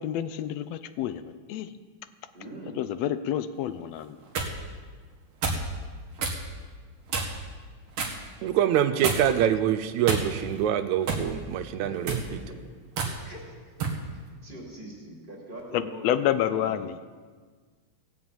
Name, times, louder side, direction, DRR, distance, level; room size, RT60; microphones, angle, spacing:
voice 1, 0.0-1.7 2.8-4.2 15.7-17.0, left 11 dB, 75° left, 12 dB, 1.7 m, -29 dB
voice 2, 2.3-2.8 8.9-9.1 11.6-12.6 13.2-13.7 14.1-16.8, right 1 dB, 15° right, -2 dB, 2.8 m, -43 dB
sound 1, 4.0-4.5 5.4-5.7 6.2-6.4 7.1-7.5 8.0-8.2 9.0-9.4 10.0-10.6 11.1-11.3 11.9-12.3 13.0-13.1 13.8-14.0, right 4 dB, 55° right, 2.6 m, -28 dB
voice 3, 8.4-12.2, right 10 dB, 80° right, 9 dB, 2.0 m, -25 dB
16.5 x 7.4 x 8.7 m, 1.5 s
omnidirectional pair, 3.3 m